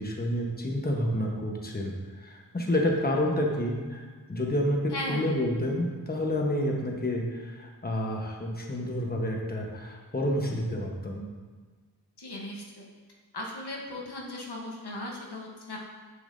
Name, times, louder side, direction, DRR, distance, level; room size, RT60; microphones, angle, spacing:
voice 1, 0.0-1.9 2.2-4.0 4.3-11.3, left 1 dB, 25° left, 0 dB, 1.1 m, -29 dB
voice 2, 4.9-5.3 12.2-12.8 13.3-15.8, left 1 dB, 75° left, -2 dB, 1.1 m, -37 dB
6.3 x 6.2 x 2.6 m, 1.4 s
cardioid pair, 40°, 40 cm